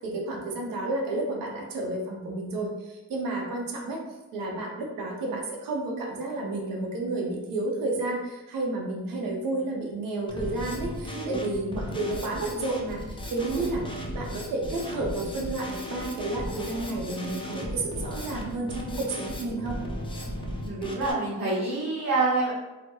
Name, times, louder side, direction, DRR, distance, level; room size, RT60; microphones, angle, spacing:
voice 1, 0.0-4.0 4.3-19.7, right 2 dB, 85° right, 0 dB, 0.6 m, -31 dB
Drum kit, 10.3-21.1, equal, 15° left, 0.3 m, -36 dB
voice 2, 20.6-22.5, right 3 dB, 50° right, -8 dB, 0.8 m, -27 dB
2.2 x 2.0 x 2.9 m, 1.0 s
cardioid pair, 90°, 33 cm